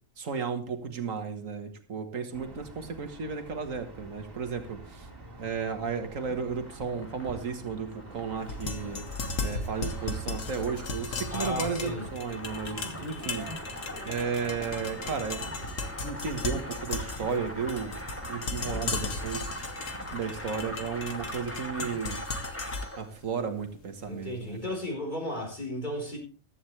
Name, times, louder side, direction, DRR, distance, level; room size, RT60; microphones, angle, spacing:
voice 1, 0.2-5.1 5.4-9.0 9.4-13.5 14.1-15.5 16.0-18.0 18.3-19.7 20.1-22.2 22.9-24.8, right 5 dB, 85° right, 1.9 m, -34 dB
sound 1, 2.3-22.0, right 2 dB, 45° right, 2.6 m, -46 dB
sound 2, 6.5-23.1, equal, 10° left, 1.4 m, -42 dB
sound 3, 8.4-24.5, left 3 dB, 80° left, 1.7 m, -37 dB
voice 2, 11.3-12.1 12.7-13.1 24.1-26.2, left 1 dB, 35° left, 4.5 m, -35 dB
14.5 x 12.0 x 3.3 m
omnidirectional pair, 1.3 m